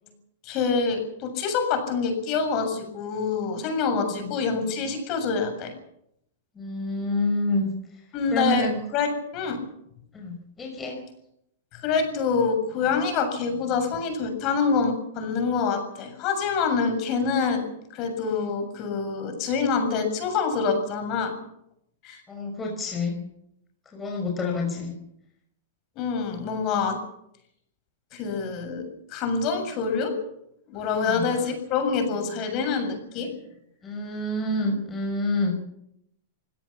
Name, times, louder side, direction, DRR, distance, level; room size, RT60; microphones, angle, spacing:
voice 1, 0.4-5.7 8.1-9.6 11.7-17.6 17.9-21.3 22.0-22.2 26.0-27.0 28.1-28.8 29.1-30.1 30.7-33.3, left 5 dB, 35° left, 6 dB, 7.2 m, -26 dB
voice 2, 6.6-7.7 8.3-8.8 10.1-11.0 22.3-23.2 23.9-24.9 31.0-31.3 33.8-35.6, left 2 dB, 15° left, 1 dB, 5.5 m, -28 dB
25.5 x 17.5 x 7.2 m, 0.77 s
supercardioid pair, 145°, 0 cm